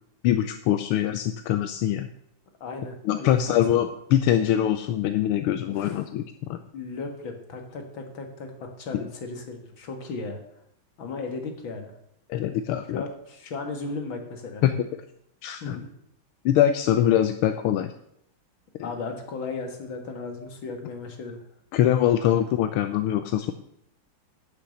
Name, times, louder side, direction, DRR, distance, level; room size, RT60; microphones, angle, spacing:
voice 1, 0.2-2.1 3.0-6.6 8.9-9.1 12.3-13.0 14.6-14.9 15.4-15.8 16.4-17.9 21.7-23.5, left 11 dB, 85° left, 9 dB, 1.6 m, -23 dB
voice 2, 2.6-3.6 5.7-6.0 6.7-10.4 11.0-11.9 12.9-14.6 15.6-15.9 18.8-21.4, left 3 dB, 65° left, 4 dB, 2.6 m, -36 dB
11.5 x 6.7 x 7.8 m, 0.75 s
omnidirectional pair, 2.3 m